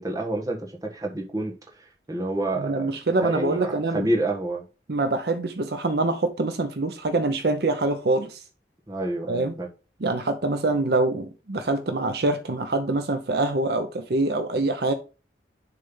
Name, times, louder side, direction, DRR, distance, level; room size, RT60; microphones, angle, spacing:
voice 1, 0.0-2.9 3.2-4.6 8.9-9.7, right 2 dB, 20° right, 1.2 m, -28 dB
voice 2, 2.6-4.1 4.9-8.4 9.3-9.5 10.0-14.9, right 2 dB, 60° right, 0.7 m, -25 dB
6.8 x 3.3 x 5.4 m
head